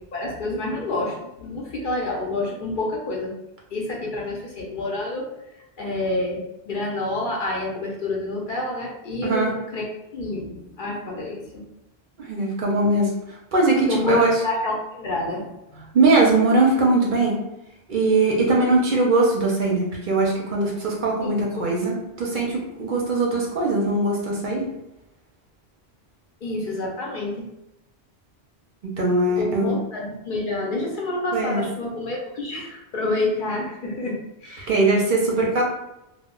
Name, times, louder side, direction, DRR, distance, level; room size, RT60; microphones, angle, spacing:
voice 1, 0.1-3.4 3.7-5.3 5.8-9.8 10.1-11.6 13.9-15.8 21.2-21.4 26.4-27.5 29.4-34.8, left 2 dB, 60° left, -2 dB, 0.6 m, -28 dB
voice 2, 12.2-13.1 13.5-14.4 15.9-17.3 17.9-24.6 29.0-29.7 31.3-31.6 34.7-35.6, right 2 dB, 60° right, -2 dB, 0.6 m, -20 dB
2.1 x 2.0 x 3.6 m, 0.90 s
omnidirectional pair, 1.1 m